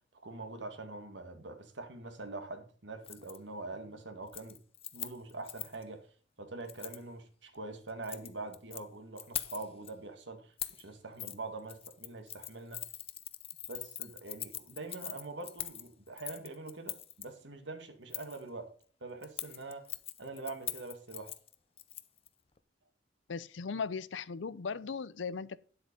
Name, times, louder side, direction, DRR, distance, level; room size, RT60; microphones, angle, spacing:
voice 1, 0.2-4.6 4.9-6.0 6.4-12.8 13.7-18.7 19.0-19.9 20.2-21.3, right 3 dB, 70° right, 1.9 m, -44 dB
Keys jangling, 3.0-3.4 3.7-4.0 4.3-5.8 6.7-7.0 7.9-8.8 9.2-9.9 10.6-10.8 11.2-11.4 11.7-17.2 18.1-18.4 19.2-22.3 22.6-22.7, left 11 dB, 30° left, 0.6 m, -42 dB
voice 2, 23.3-25.6, left 5 dB, 75° left, 0.6 m, -38 dB
9.8 x 7.8 x 5.2 m
head